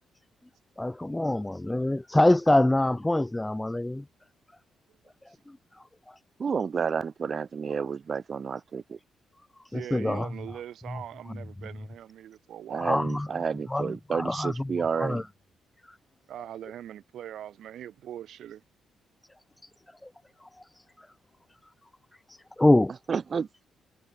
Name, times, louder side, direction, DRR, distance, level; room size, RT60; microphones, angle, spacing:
voice 1, 0.8-4.0 6.1-6.2 9.7-10.3 12.8-13.3 13.7-13.9 14.1-14.5 15.0-15.2 15.9-16.0 20.4-20.5 22.3-22.9, left 1 dB, 10° left, 1.9 m, -24 dB
voice 2, 6.4-9.0 12.7-15.2 23.1-23.5, right 6 dB, 45° right, 1.6 m, -30 dB
voice 3, 9.7-13.0 16.3-18.6, right 11 dB, 75° right, 6.0 m, -41 dB
supercardioid pair, 65°, 0 cm